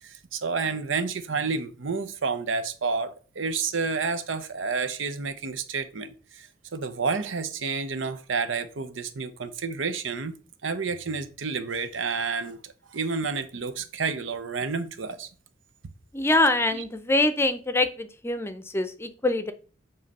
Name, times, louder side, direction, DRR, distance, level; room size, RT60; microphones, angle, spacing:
voice 1, 0.0-10.3 10.6-15.3 16.7-16.8, right 4 dB, 90° right, 0.8 m, -30 dB
voice 2, 16.1-19.5, left 2 dB, 15° left, 0.6 m, -24 dB
7.6 x 3.2 x 5.4 m
head